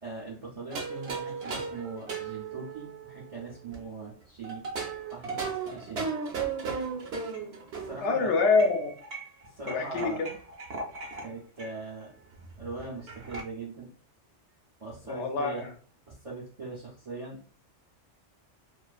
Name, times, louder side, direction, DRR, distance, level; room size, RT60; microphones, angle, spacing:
voice 1, 0.0-4.6 5.1-6.1 7.7-8.3 9.4-10.2 11.2-12.1 12.6-13.9 14.8-15.6 16.1-17.4, right 3 dB, 45° right, -4 dB, 0.4 m, -41 dB
sound 1, 0.7-3.8 4.4-8.0 8.5-11.3 11.6-11.7 12.0-12.1 12.3-13.4, right 4 dB, 65° right, 0.8 m, -36 dB
voice 2, 8.0-8.9 9.7-10.3 15.1-15.7, left 4 dB, 75° left, 3 dB, 0.9 m, -26 dB
2.4 x 2.4 x 2.3 m, 0.42 s
omnidirectional pair, 1.2 m